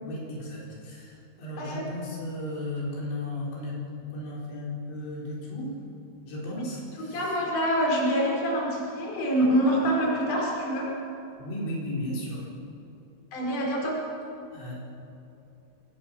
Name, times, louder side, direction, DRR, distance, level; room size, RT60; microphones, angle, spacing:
voice 1, 0.0-3.8 4.1-5.7 6.3-7.4 11.4-12.5 14.5-14.8, left 1 dB, 80° left, -5 dB, 6.7 m, -35 dB
voice 2, 7.1-10.9 13.3-14.0, equal, 45° left, -3 dB, 6.2 m, -25 dB
26.5 x 20.5 x 6.2 m, 2.8 s
omnidirectional pair, 5.1 m